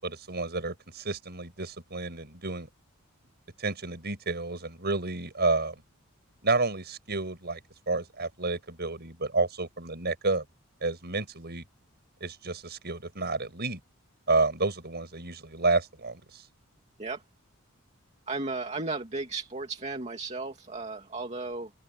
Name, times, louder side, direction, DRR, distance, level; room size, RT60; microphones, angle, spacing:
voice 1, 0.0-2.7 3.6-5.8 6.4-7.6 7.9-10.5 10.8-11.6 12.2-13.8 14.3-16.4, right 3 dB, 50° right, 7.4 m, -30 dB
voice 2, 18.3-21.7, right 3 dB, 30° right, 2.4 m, -34 dB
open air
head